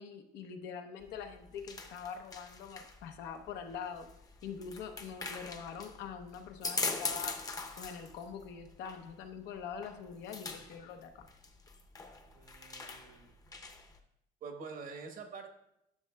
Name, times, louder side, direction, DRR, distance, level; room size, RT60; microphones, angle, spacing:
voice 1, 0.0-4.1 4.4-7.4 7.8-11.3, left 7 dB, 85° left, 6 dB, 0.8 m, -44 dB
sound 1, 1.0-14.0, left 3 dB, 20° left, 0.7 m, -42 dB
voice 2, 12.3-13.3 14.4-15.5, right 5 dB, 55° right, 5 dB, 1.0 m, -46 dB
10.5 x 6.3 x 2.2 m, 0.81 s
cardioid pair, 110°, 17 cm